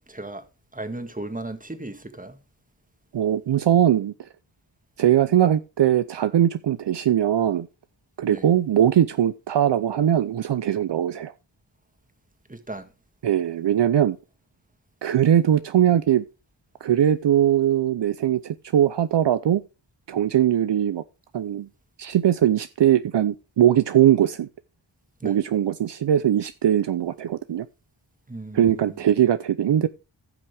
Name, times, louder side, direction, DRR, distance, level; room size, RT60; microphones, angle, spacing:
voice 1, 0.1-0.4 0.7-2.4 8.2-8.4 12.5-12.9 25.2-25.4 28.3-29.0, right 2 dB, 15° right, 1.8 m, -36 dB
voice 2, 3.1-4.1 5.0-7.7 8.2-11.3 13.2-14.2 15.0-16.2 16.8-19.6 20.1-21.0 21.3-21.7 22.0-24.5 25.2-27.7 28.5-29.9, right 10 dB, 65° right, 0.6 m, -20 dB
15.5 x 6.0 x 3.4 m
cardioid pair, 60°, 46 cm